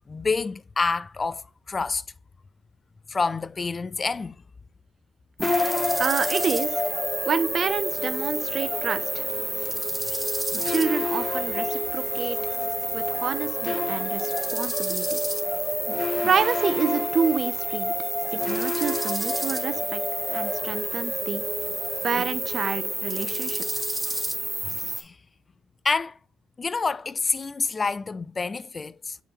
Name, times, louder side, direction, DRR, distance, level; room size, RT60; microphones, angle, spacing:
voice 1, 0.1-2.0 3.1-4.4 24.7-25.2 25.8-26.2 26.6-29.2, left 4 dB, 35° left, 0.3 m, -28 dB
sound 1, 5.4-24.5, left 2 dB, 20° left, 0.7 m, -31 dB
sound 2, 5.4-25.0, right 1 dB, 10° right, 1.2 m, -30 dB
voice 2, 6.0-6.8 7.3-9.3 10.6-12.5 12.9-15.2 16.2-17.9 18.3-20.0 20.3-21.4 22.0-23.6, right 6 dB, 55° right, 0.8 m, -28 dB
7.0 x 4.3 x 3.1 m
hypercardioid pair, 55°, 0 cm